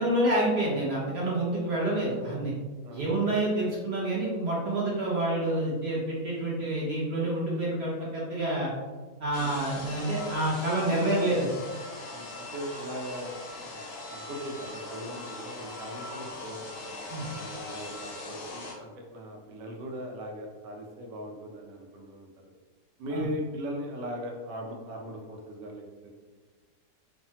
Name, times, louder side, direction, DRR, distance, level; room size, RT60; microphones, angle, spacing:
voice 1, 0.0-2.5 2.9-8.7 9.2-11.5 17.1-17.2 23.1-23.2, right 1 dB, 70° right, -5 dB, 0.6 m, -28 dB
voice 2, 2.8-3.4 9.4-9.5 10.9-11.4 12.1-13.8 14.1-16.7 17.3-22.3 23.0-26.1, equal, 90° right, 1 dB, 1.2 m, -39 dB
sound 1, 9.3-18.7, left 2 dB, 85° left, 1.3 m, -41 dB
3.2 x 2.1 x 2.7 m, 1.4 s
omnidirectional pair, 1.8 m